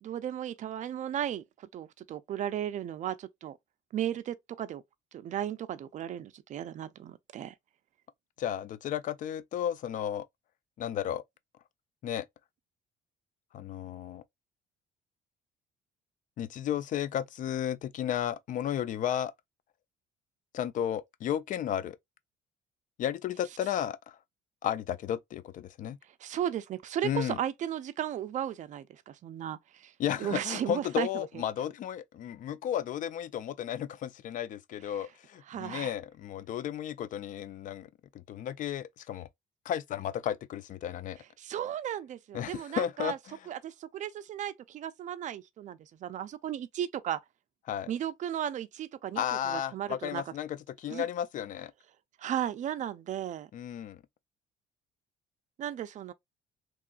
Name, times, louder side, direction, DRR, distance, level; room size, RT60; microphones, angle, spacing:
voice 1, 0.0-3.6 3.9-4.8 5.1-7.5 26.2-29.9 30.2-31.3 34.9-35.0 35.5-35.9 41.4-43.2 43.5-47.2 47.9-50.2 50.9-51.1 52.2-53.5 55.6-56.1, right 10 dB, 45° right, 0.4 m, -35 dB
voice 2, 8.4-10.3 10.8-11.2 12.0-12.3 13.5-14.2 16.4-19.3 20.5-22.0 23.0-24.2 24.6-26.0 27.0-27.4 30.0-37.9 38.1-39.3 39.7-41.2 42.3-43.1 47.7-47.9 49.2-51.7 53.5-54.0, left 10 dB, 50° left, 0.4 m, -33 dB
3.0 x 2.3 x 2.4 m
cardioid pair, 110°, 17 cm